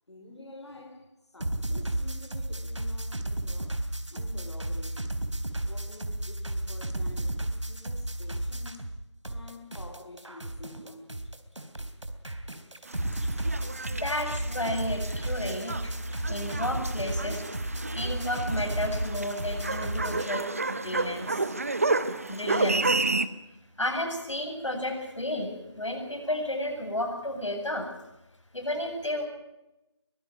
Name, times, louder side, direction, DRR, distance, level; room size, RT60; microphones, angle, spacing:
voice 1, 0.1-3.8 4.1-5.2 5.6-8.8 9.3-11.1, left 2 dB, 65° left, 3 dB, 3.5 m, -48 dB
sound 1, 1.4-9.0 9.2-20.3, right 1 dB, 85° right, 3.2 m, -33 dB
sound 2, 12.9-23.3, right 3 dB, 30° right, 0.8 m, -31 dB
voice 2, 14.0-15.9 16.2-21.5 22.1-23.0 23.8-27.9 28.5-29.2, left 1 dB, 85° left, 4 dB, 7.6 m, -32 dB
23.0 x 14.5 x 9.3 m, 0.92 s
figure-of-eight pair, 170°, 15 cm